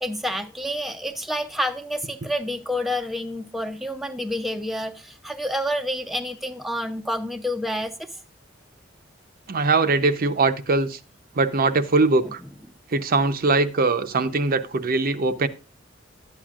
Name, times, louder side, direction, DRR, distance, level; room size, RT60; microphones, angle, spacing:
voice 1, 0.0-8.1 12.2-12.3, equal, ahead, 0.5 m, -28 dB
voice 2, 9.5-11.0 11.4-12.4 12.9-15.5, right 3 dB, 50° right, 0.6 m, -21 dB
11.5 x 8.8 x 2.4 m
head